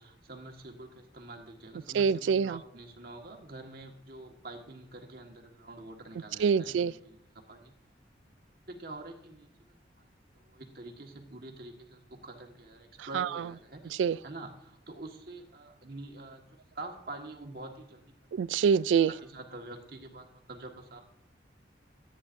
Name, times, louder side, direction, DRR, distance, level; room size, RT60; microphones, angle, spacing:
voice 1, 0.0-7.7 8.7-10.1 10.3-16.5 16.7-18.1 18.8-21.0, right 2 dB, 55° right, 1.6 m, -46 dB
voice 2, 1.9-2.6 6.4-6.9 13.1-13.3 14.0-14.2 18.4-19.1, right 6 dB, 85° right, 0.3 m, -25 dB
14.0 x 9.3 x 2.6 m
head